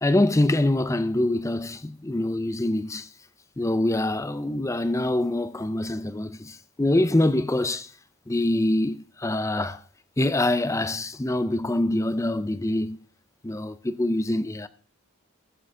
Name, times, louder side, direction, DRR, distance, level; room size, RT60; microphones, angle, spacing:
voice 1, 0.0-3.1 3.6-7.9 8.3-9.8 10.2-13.0 13.4-14.7, left 1 dB, 15° left, 0.4 m, -25 dB
19.5 x 7.5 x 3.7 m
head